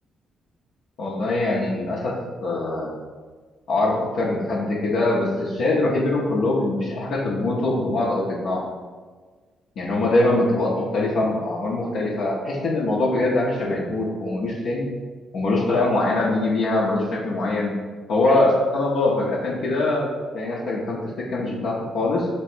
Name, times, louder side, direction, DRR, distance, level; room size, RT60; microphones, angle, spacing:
voice 1, 1.0-2.1 2.4-2.9 3.7-8.6 9.8-14.9 15.3-17.7 18.1-20.1 20.3-22.3, left 2 dB, 65° left, -5 dB, 0.6 m, -23 dB
3.2 x 3.0 x 4.4 m, 1.4 s
hypercardioid pair, 45°, 0 cm